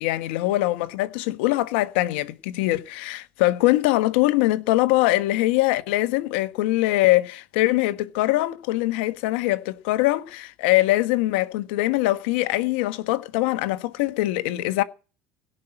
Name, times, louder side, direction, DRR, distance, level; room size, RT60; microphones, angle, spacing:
voice 1, 0.0-14.8, left 17 dB, 80° left, 1.3 m, -22 dB
17.0 x 5.7 x 9.0 m
supercardioid pair, 85°, 6 cm